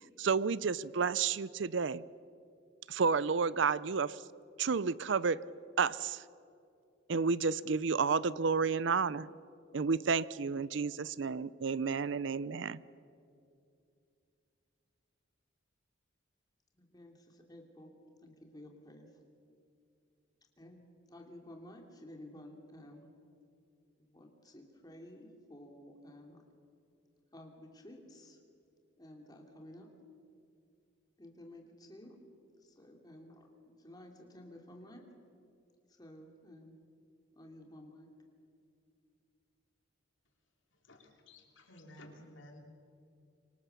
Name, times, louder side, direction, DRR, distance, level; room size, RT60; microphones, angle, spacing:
voice 1, 0.2-2.0 2.9-4.2 4.6-5.4 5.8-6.2 7.1-9.3 9.7-12.8, right 5 dB, 65° right, 19 dB, 0.5 m, -31 dB
voice 2, 16.7-17.9 18.2-19.1 20.6-23.1 24.1-26.4 27.3-28.4 29.0-29.9 31.2-32.1 32.6-35.0 36.0-36.8 37.3-38.1, left 1 dB, 20° left, 2 dB, 2.8 m, -53 dB
voice 3, 40.8-42.6, left 1 dB, 70° left, 2 dB, 3.6 m, -54 dB
26.5 x 24.5 x 7.0 m, 2.5 s
head